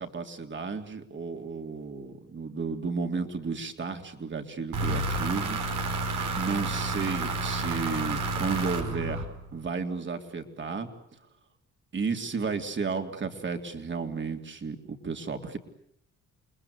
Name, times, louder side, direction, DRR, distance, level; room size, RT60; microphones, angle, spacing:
voice 1, 0.0-5.6 6.0-10.9 11.9-15.6, right 5 dB, 40° right, 5 dB, 3.6 m, -33 dB
sound 1, 4.7-9.7, right 3 dB, 85° right, 4.9 m, -30 dB
29.0 x 21.0 x 8.3 m, 0.69 s
cardioid pair, 90°, 30 cm